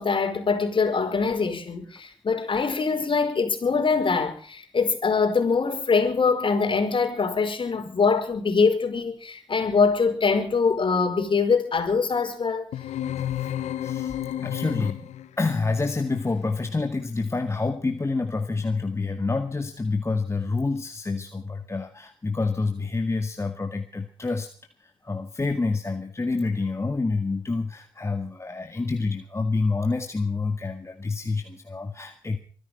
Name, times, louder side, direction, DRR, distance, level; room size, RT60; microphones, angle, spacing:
voice 1, 0.0-12.7, left 5 dB, 45° left, 4.9 m, -23 dB
sound 1, 12.7-15.4, left 11 dB, 70° left, 1.2 m, -30 dB
voice 2, 13.8-15.1 15.4-24.5 24.8-32.4, left 3 dB, 25° left, 1.9 m, -28 dB
24.0 x 11.0 x 5.5 m
hypercardioid pair, 45°, 12 cm